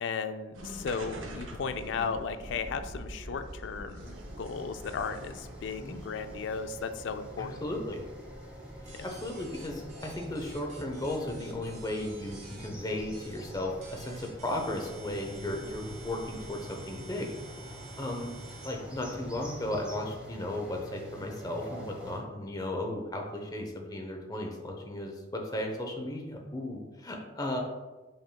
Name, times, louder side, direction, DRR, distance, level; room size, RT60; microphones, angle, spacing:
voice 1, 0.0-7.6, left 5 dB, 65° left, 9 dB, 0.3 m, -35 dB
sound 1, 0.5-16.7, right 1 dB, 80° right, 0.6 m, -47 dB
sound 2, 4.0-22.2, equal, 5° right, 0.9 m, -47 dB
voice 2, 7.4-8.0 9.0-17.3 17.6-18.3 18.6-27.6, left 1 dB, 20° left, 1 dB, 0.6 m, -35 dB
sound 3, 8.9-12.7 13.1-13.5 13.8-18.7, right 4 dB, 35° right, 0.8 m, -51 dB
5.2 x 3.6 x 2.2 m, 1.2 s
head